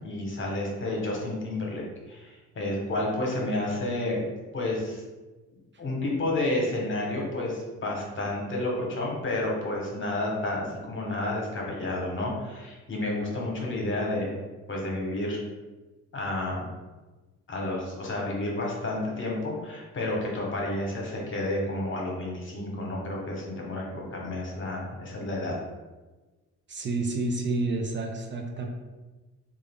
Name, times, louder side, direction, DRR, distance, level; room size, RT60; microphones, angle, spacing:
voice 1, 0.0-4.2 4.5-5.0 5.8-14.4 14.7-15.4 16.1-16.7 17.5-25.5, left 1 dB, 40° left, -2 dB, 1.1 m, -30 dB
voice 2, 26.7-28.7, right 2 dB, 40° right, 2 dB, 0.5 m, -29 dB
3.4 x 2.5 x 3.5 m, 1.2 s
cardioid pair, 90°, 30 cm